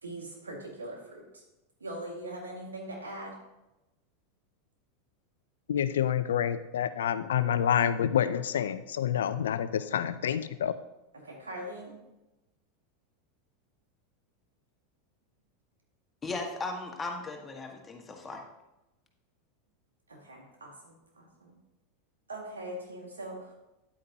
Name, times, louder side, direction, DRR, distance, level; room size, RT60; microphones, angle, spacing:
voice 1, 0.0-1.4 1.8-3.4 10.3-10.4 11.1-12.0 20.1-21.5 22.3-23.5, right 1 dB, 85° right, 0 dB, 1.9 m, -42 dB
voice 2, 5.7-10.7, left 9 dB, 75° left, 13 dB, 0.5 m, -28 dB
voice 3, 16.2-18.4, left 3 dB, 20° left, 1 dB, 1.6 m, -37 dB
9.7 x 8.5 x 2.8 m, 0.97 s
hypercardioid pair, 90°, 0 cm